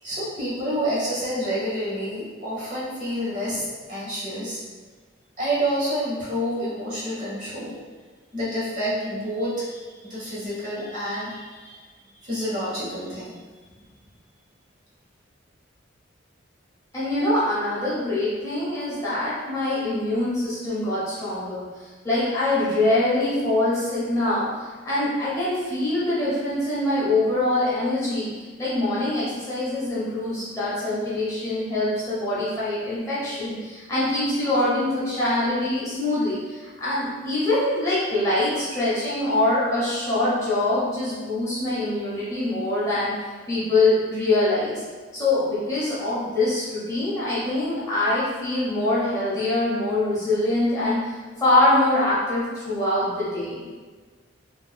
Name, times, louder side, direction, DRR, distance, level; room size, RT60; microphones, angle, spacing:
voice 1, 0.0-4.6 5.4-7.8 8.3-11.8 12.2-13.4, equal, 40° right, -9 dB, 1.1 m, -28 dB
voice 2, 16.9-28.3 28.6-44.8 45.1-53.6, left 2 dB, 15° left, -10 dB, 0.8 m, -24 dB
3.8 x 2.5 x 2.2 m, 1.4 s
head